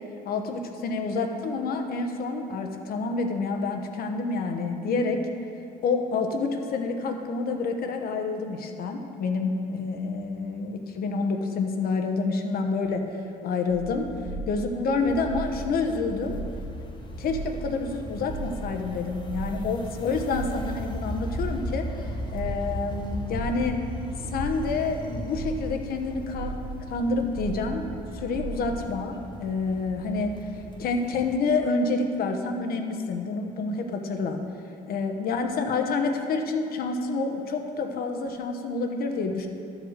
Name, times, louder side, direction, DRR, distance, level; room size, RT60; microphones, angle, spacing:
voice 1, 0.2-5.2 5.8-13.1 13.4-14.1 14.5-16.4 17.2-21.9 22.3-23.9 24.3-26.6 26.9-30.4 30.8-34.4 34.9-39.5, left 3 dB, 60° left, 4 dB, 1.1 m, -28 dB
sound 1, 13.7-28.6, right 2 dB, 70° right, 1.5 m, -38 dB
sound 2, 15.0-31.3, equal, 25° left, 1.1 m, -38 dB
12.5 x 5.0 x 6.5 m, 2.5 s
cardioid pair, 110°, 17 cm